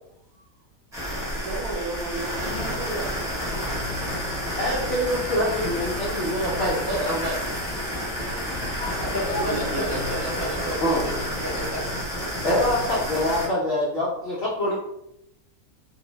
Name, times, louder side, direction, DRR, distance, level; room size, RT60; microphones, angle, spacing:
sound 1, 0.9-13.5, equal, 5° right, 0.6 m, -30 dB
voice 1, 1.4-3.1 9.5-10.0 14.6-14.8, right 3 dB, 85° right, 0 dB, 1.2 m, -33 dB
voice 2, 4.6-7.4 8.5-8.9 9.3-9.5 10.8-11.1 12.2-14.8, left 1 dB, 65° left, -5 dB, 0.6 m, -25 dB
voice 3, 9.0-11.8, equal, 40° left, -7 dB, 0.9 m, -31 dB
2.5 x 2.0 x 3.0 m, 0.81 s
omnidirectional pair, 1.6 m